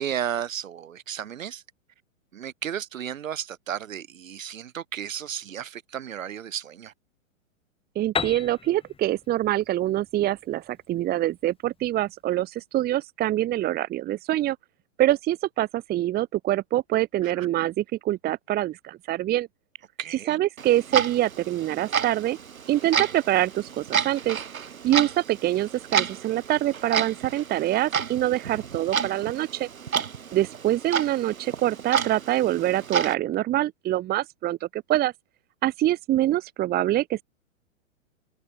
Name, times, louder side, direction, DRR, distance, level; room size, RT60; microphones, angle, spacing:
voice 1, 0.0-1.6 2.3-6.9 17.2-17.5 20.0-20.4, right 9 dB, 70° right, 4.8 m, -33 dB
voice 2, 7.9-14.6 15.0-19.5 20.3-22.4 22.7-24.4 24.8-29.7 30.3-35.1 35.6-37.2, right 14 dB, 25° right, 1.4 m, -25 dB
Piano, 8.2-11.8, left 6 dB, 15° left, 4.0 m, -35 dB
Clock, 20.6-33.1, right 7 dB, 90° right, 2.0 m, -30 dB
hypercardioid pair, 125°, 40 cm